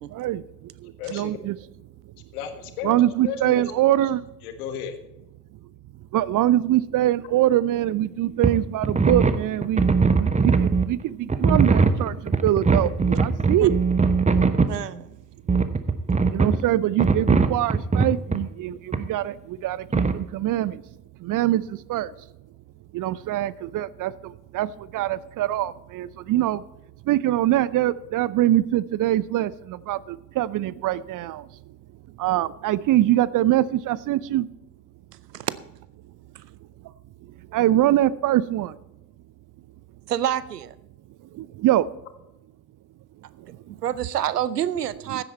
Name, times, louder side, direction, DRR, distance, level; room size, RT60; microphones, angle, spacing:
voice 1, 0.1-1.6 2.8-4.3 6.1-9.9 10.2-13.8 16.3-20.8 21.2-22.1 22.9-26.6 27.1-31.5 32.2-34.5 37.5-38.8 41.3-41.9 43.5-43.6, right 13 dB, 45° right, 20 dB, 0.6 m, -23 dB
voice 2, 1.0-1.4 2.3-2.9 3.2-3.6 4.0-4.1 4.4-4.9, left 8 dB, 70° left, 9 dB, 1.6 m, -33 dB
sound 1, 8.4-8.6 8.8-10.9 11.3-14.8 15.5-16.6 17.0-18.4 18.9-19.0 19.9-20.2, right 4 dB, 15° right, 1.0 m, -20 dB
voice 3, 14.7-15.2 35.3-35.6 40.1-40.7 43.7-45.2, right 11 dB, 85° right, 17 dB, 0.6 m, -27 dB
15.5 x 9.0 x 4.3 m, 0.91 s
figure-of-eight pair, 45°, 46 cm